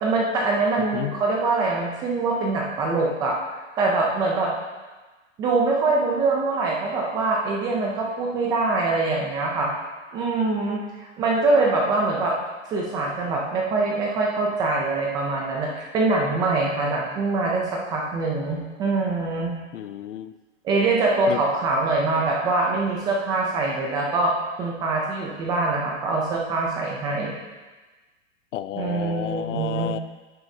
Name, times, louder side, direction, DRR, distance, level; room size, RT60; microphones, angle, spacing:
voice 1, 0.0-4.5 5.4-9.7 10.1-12.3 12.7-19.5 20.6-27.4 28.8-29.9, right 3 dB, 10° right, -1 dB, 0.4 m, -24 dB
voice 2, 0.8-1.2 19.7-20.3 21.3-21.4 28.5-30.0, left 12 dB, 75° left, 12 dB, 0.6 m, -31 dB
9.6 x 9.2 x 2.7 m, 1.2 s
supercardioid pair, 160°, 38 cm